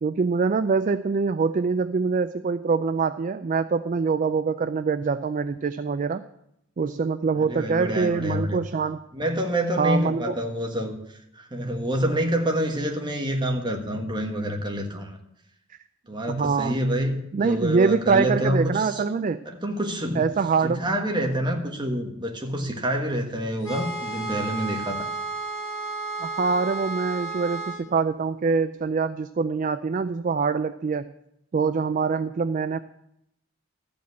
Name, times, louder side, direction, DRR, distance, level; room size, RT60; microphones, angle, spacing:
voice 1, 0.0-6.2 6.8-9.0 9.8-10.3 16.3-16.8 17.3-19.4 20.2-20.8 26.2-31.1 31.5-32.8, right 5 dB, 35° right, 11 dB, 0.3 m, -24 dB
voice 2, 7.3-8.6 9.1-11.0 11.3-15.2 16.1-19.0 19.4-20.3 20.6-25.1, equal, 20° right, 2 dB, 1.5 m, -27 dB
sound 1, 23.6-27.8, right 3 dB, 20° left, 3.7 m, -32 dB
13.5 x 5.2 x 8.1 m, 0.80 s
head